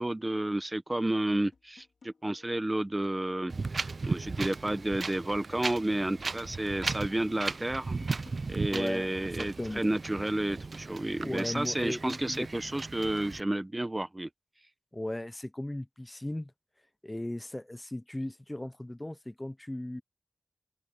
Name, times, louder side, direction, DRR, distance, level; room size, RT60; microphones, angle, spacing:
voice 1, 0.0-3.5 4.0-8.0 8.5-14.3, right 1 dB, 25° right, 1.0 m, -31 dB
sound 1, 1.5-2.7 3.0-6.6 7.0-9.5, left 4 dB, 85° left, 3.9 m, -60 dB
Wind, 3.5-13.4, right 4 dB, 65° right, 0.5 m, -37 dB
voice 2, 8.7-9.8 11.2-12.5 14.9-16.5 17.0-20.0, left 1 dB, 20° left, 0.5 m, -37 dB
cardioid pair, 55°, 0 cm